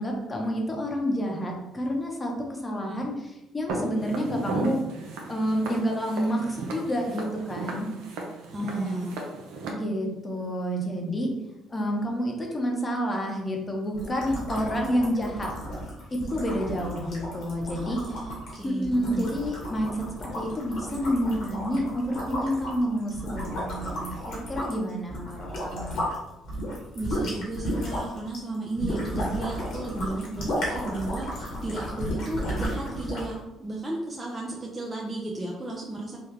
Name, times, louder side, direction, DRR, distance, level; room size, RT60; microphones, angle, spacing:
voice 1, 0.0-4.8 5.3-7.9 8.6-9.0 9.7-11.3 11.7-15.5 16.3-18.0 18.6-19.9 20.2-26.1, equal, 25° left, 0 dB, 0.9 m, -29 dB
Walk footsteps, 3.7-9.7, right 2 dB, 75° right, 0.6 m, -35 dB
voice 2, 8.5-9.2 17.8-19.3 26.9-36.2, right 2 dB, 20° right, -3 dB, 0.6 m, -34 dB
sound 1, 13.9-26.1 26.4-33.3, equal, 70° left, 1.4 m, -33 dB
3.4 x 2.3 x 3.2 m, 0.97 s
supercardioid pair, 65°, 0 cm